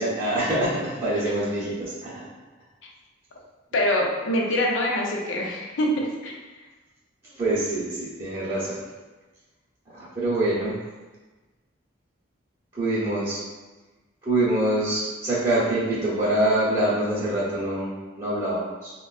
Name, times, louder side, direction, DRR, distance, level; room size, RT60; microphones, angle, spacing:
voice 1, 0.0-2.1 7.4-8.9 9.9-10.7 12.7-13.4 14.2-18.9, right 1 dB, 25° right, -12 dB, 0.8 m, -25 dB
voice 2, 3.7-5.9 6.2-6.3, left 1 dB, 75° left, -1 dB, 0.6 m, -24 dB
3.7 x 2.2 x 2.3 m, 1.2 s
head